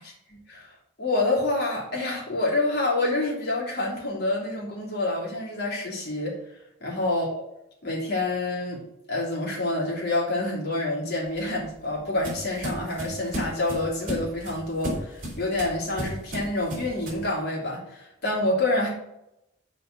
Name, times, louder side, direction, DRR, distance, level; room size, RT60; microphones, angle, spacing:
voice 1, 0.3-0.7 1.0-6.4 6.8-7.3 7.8-8.8 9.1-18.9, left 2 dB, 55° left, -4 dB, 3.2 m, -27 dB
sound 1, 11.3-17.3, equal, 45° right, 3.5 m, -35 dB
6.8 x 5.0 x 6.8 m, 0.85 s
head